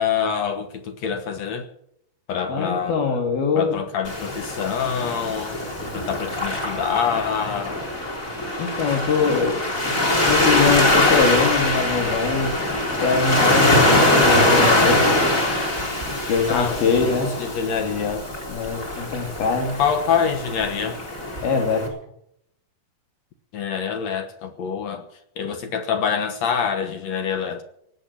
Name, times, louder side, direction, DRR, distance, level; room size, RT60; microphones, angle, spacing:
voice 1, 0.0-1.7 2.3-3.2 3.6-5.6 5.9-7.8 16.5-18.3 19.8-21.0 23.5-25.0 25.4-27.6, left 7 dB, 60° left, 2.1 m, -25 dB
voice 2, 2.5-3.8 8.6-9.9 10.3-12.6 13.0-15.1 16.3-17.4 18.5-19.8 21.4-21.9, left 5 dB, 85° left, 4.5 m, -23 dB
Waves surf, 4.0-21.9, left 1 dB, 20° left, 3.7 m, -22 dB
18.0 x 7.5 x 9.9 m
omnidirectional pair, 4.2 m